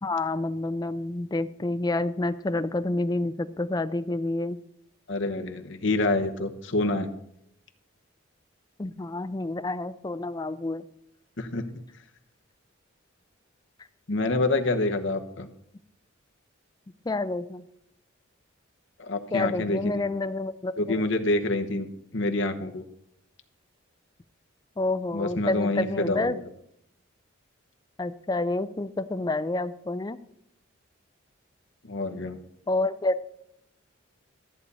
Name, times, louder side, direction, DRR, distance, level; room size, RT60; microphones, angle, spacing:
voice 1, 0.0-4.6 8.8-10.8 17.1-17.6 19.3-21.0 24.8-26.4 28.0-30.2 32.7-33.3, left 2 dB, 20° left, 11 dB, 0.4 m, -28 dB
voice 2, 5.1-7.1 11.4-11.8 14.1-15.5 19.0-19.9 20.8-21.9 22.1-22.8 25.1-26.4 31.9-32.4, left 2 dB, 60° left, 5 dB, 1.0 m, -27 dB
13.5 x 8.3 x 4.2 m, 0.76 s
head